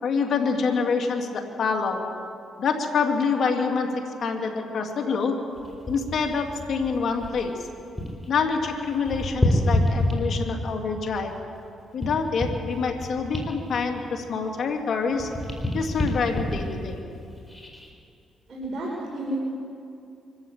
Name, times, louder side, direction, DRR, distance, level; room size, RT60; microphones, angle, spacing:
voice 1, 0.0-2.1 2.6-3.9 4.2-5.4 5.9-7.7 8.3-11.4 11.9-15.3 15.7-17.0, left 5 dB, 60° left, 3 dB, 2.8 m, -26 dB
sound 1, 5.6-8.3 8.6-10.7 11.3-14.8 15.1-17.9 18.5-18.7, left 1 dB, 10° left, 4.4 m, -29 dB
voice 2, 18.5-19.4, right 1 dB, 45° right, -5 dB, 5.3 m, -31 dB
24.5 x 13.5 x 8.3 m, 2.6 s
cardioid pair, 90°, 0 cm